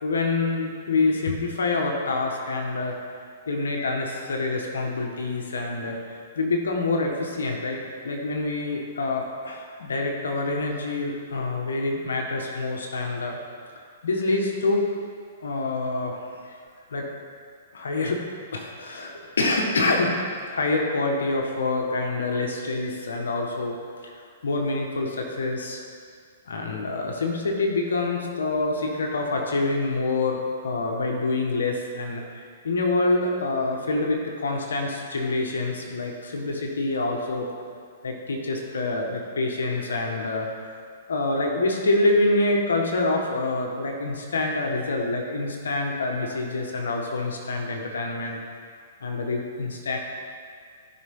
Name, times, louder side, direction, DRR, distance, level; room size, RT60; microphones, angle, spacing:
voice 1, 0.0-3.0 3.5-13.4 13.8-14.9 15.4-16.2 16.5-16.6 16.9-17.1 17.7-18.2 18.5-20.2 20.5-23.8 24.0-25.8 26.5-37.5 38.0-40.5 41.1-48.4 49.0-50.0, left 2 dB, 90° left, 1 dB, 1.7 m, -26 dB
17.0 x 5.8 x 3.9 m, 2.1 s
hypercardioid pair, 140°, 0 cm